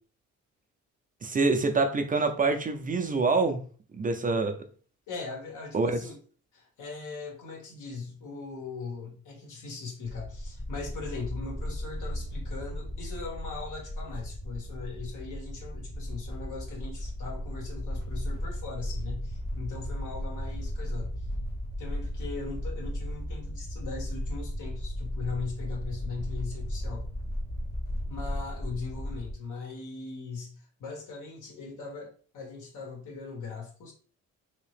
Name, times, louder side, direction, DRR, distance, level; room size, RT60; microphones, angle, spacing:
voice 1, 1.2-3.6 3.9-4.6 5.7-6.0, right 3 dB, 30° right, 0.4 m, -26 dB
voice 2, 5.1-6.2 6.5-21.3 21.8-27.1 28.1-33.9, left 4 dB, 80° left, 1.6 m, -40 dB
sound 1, 10.0-29.3, equal, 35° left, 1.1 m, -35 dB
2.9 x 2.8 x 3.2 m
cardioid pair, 90°, 30 cm